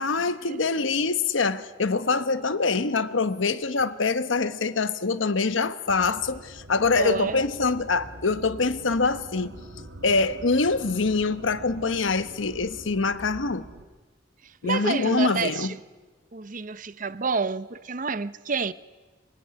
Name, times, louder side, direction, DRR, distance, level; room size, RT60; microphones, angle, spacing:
voice 1, 0.0-9.5 10.0-13.7 14.6-15.7, left 4 dB, 90° left, 1.1 m, -24 dB
sound 1, 5.9-13.9, right 1 dB, 75° right, 2.5 m, -44 dB
voice 2, 7.0-7.4 14.6-15.8 16.3-18.7, right 4 dB, 45° right, 0.8 m, -29 dB
26.0 x 22.5 x 9.6 m
head